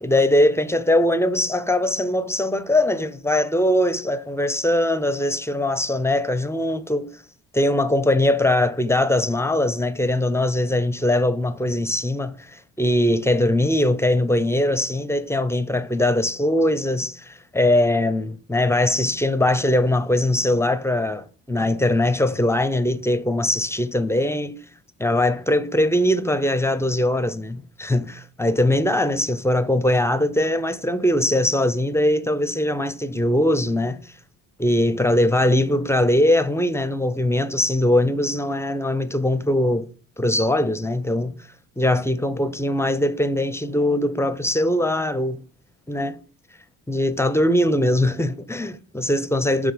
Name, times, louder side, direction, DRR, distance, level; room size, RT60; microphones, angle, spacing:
voice 1, 0.0-7.1 7.5-24.6 25.0-34.1 34.6-39.9 40.2-41.4 41.8-45.4 45.9-46.2 46.9-49.7, left 1 dB, 5° left, 0.5 m, -21 dB
6.8 x 3.6 x 5.1 m
supercardioid pair, 75°, 36 cm